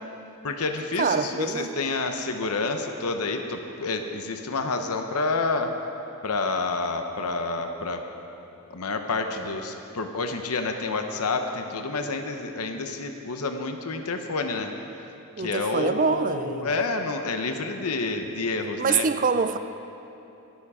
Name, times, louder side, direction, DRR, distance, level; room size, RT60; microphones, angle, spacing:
voice 1, 0.4-5.7 6.2-8.0 8.7-14.7 15.4-19.0, left 3 dB, 90° left, 5 dB, 0.8 m, -29 dB
voice 2, 1.0-1.7 15.4-16.8 18.8-19.6, right 5 dB, 35° right, 11 dB, 0.4 m, -25 dB
21.5 x 7.2 x 4.9 m, 2.9 s
head